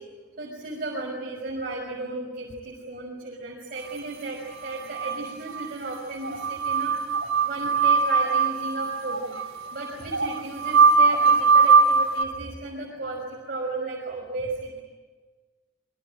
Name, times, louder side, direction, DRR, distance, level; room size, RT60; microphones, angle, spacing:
voice 1, 0.4-7.0 7.4-9.3 9.7-14.8, right 2 dB, 50° right, -2 dB, 5.8 m, -34 dB
sound 1, 4.6-5.7 5.9-6.0 6.2-12.2, right 5 dB, 80° right, 2.7 m, -21 dB
27.5 x 23.5 x 9.0 m, 1.3 s
head